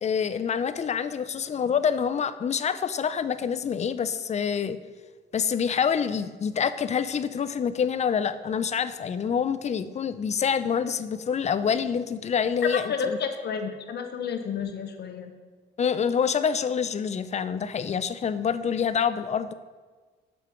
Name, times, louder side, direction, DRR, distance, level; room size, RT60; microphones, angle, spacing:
voice 1, 0.0-4.8 5.3-13.2 15.8-19.5, left 7 dB, 35° left, 12 dB, 0.4 m, -26 dB
voice 2, 12.9-15.3, left 6 dB, 55° left, 6 dB, 0.9 m, -31 dB
6.9 x 4.4 x 5.0 m, 1.4 s
cardioid pair, 90°, 20 cm